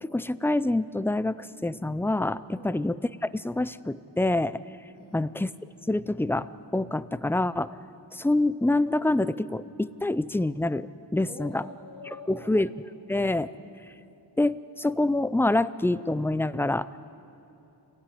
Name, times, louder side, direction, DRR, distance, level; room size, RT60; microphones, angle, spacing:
voice 1, 0.0-4.5 5.1-5.5 5.9-7.8 8.1-11.6 12.3-12.7 13.1-13.5 14.4-16.9, left 2 dB, 5° left, 16 dB, 0.5 m, -26 dB
voice 2, 5.0-5.3 11.2-12.5, left 3 dB, 30° left, -5 dB, 3.7 m, -45 dB
26.5 x 17.5 x 9.9 m, 2.8 s
wide cardioid pair, 110°, 44 cm